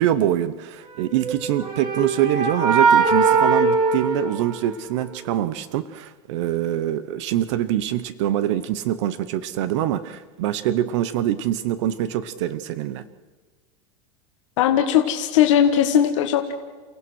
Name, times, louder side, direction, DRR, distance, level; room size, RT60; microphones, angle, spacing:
voice 1, 0.0-13.0, right 12 dB, 70° right, 13 dB, 1.0 m, -24 dB
sound 1, 1.1-5.0, right 4 dB, 30° right, 2.8 m, -20 dB
voice 2, 14.6-16.5, left 9 dB, 85° left, 4 dB, 1.6 m, -18 dB
29.5 x 16.0 x 6.3 m, 1.4 s
supercardioid pair, 145°, 16 cm